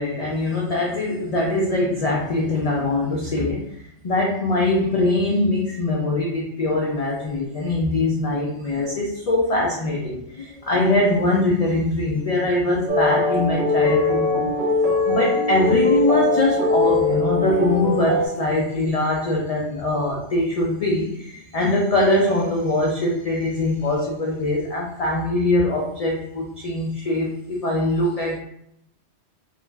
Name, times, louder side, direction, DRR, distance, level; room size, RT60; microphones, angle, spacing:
voice 1, 0.0-3.6 4.0-14.5 15.1-28.4, left 2 dB, 75° left, -2 dB, 0.3 m, -22 dB
sound 1, 12.9-18.3, left 3 dB, 55° right, 0.7 m, -21 dB
2.4 x 2.2 x 3.1 m, 0.73 s
omnidirectional pair, 1.2 m